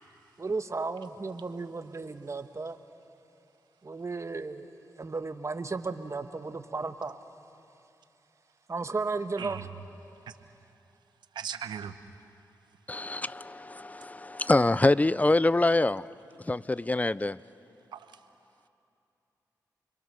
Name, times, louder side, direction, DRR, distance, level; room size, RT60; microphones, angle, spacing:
voice 1, 0.4-2.8 3.8-7.2 8.7-9.7, right 3 dB, 40° right, 1.3 m, -34 dB
voice 2, 11.3-12.0 17.9-18.1, right 8 dB, 90° right, 0.9 m, -37 dB
voice 3, 12.9-16.0 16.5-17.4, left 2 dB, 20° left, 0.5 m, -25 dB
28.5 x 22.5 x 6.7 m
cardioid pair, 45°, 7 cm